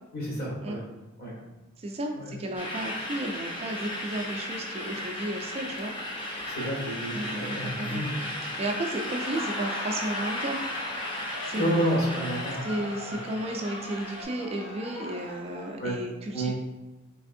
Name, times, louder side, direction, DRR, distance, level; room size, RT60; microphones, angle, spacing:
voice 1, 0.1-0.9 1.2-1.4 2.1-2.3 6.5-8.1 11.5-12.6 13.1-13.2 15.8-16.0 16.3-16.5, right 1 dB, 50° left, -4 dB, 1.2 m, -30 dB
voice 2, 1.8-5.9 7.1-8.1 8.4-10.6 11.4-11.9 12.6-16.5, right 1 dB, 30° right, 2 dB, 0.3 m, -33 dB
sound 1, 2.5-14.2, left 1 dB, 25° left, 0.6 m, -36 dB
Laughter, 9.0-15.7, left 1 dB, 75° left, 1.0 m, -39 dB
3.4 x 3.3 x 2.5 m, 1.1 s
head